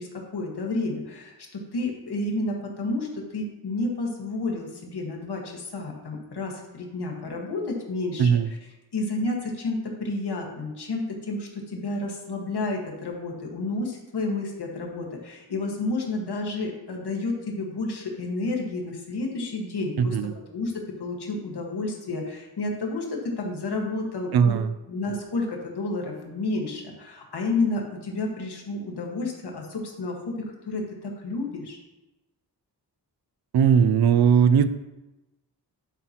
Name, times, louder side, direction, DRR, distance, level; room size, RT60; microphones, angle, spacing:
voice 1, 0.0-8.6 8.9-20.7 21.0-24.6 24.9-30.3 30.6-31.8, left 2 dB, 75° left, 0 dB, 1.7 m, -30 dB
voice 2, 20.0-20.3 24.3-24.7 33.5-34.7, right 7 dB, 70° right, 12 dB, 0.5 m, -19 dB
11.0 x 5.9 x 2.9 m, 1.0 s
wide cardioid pair, 120°, 40 cm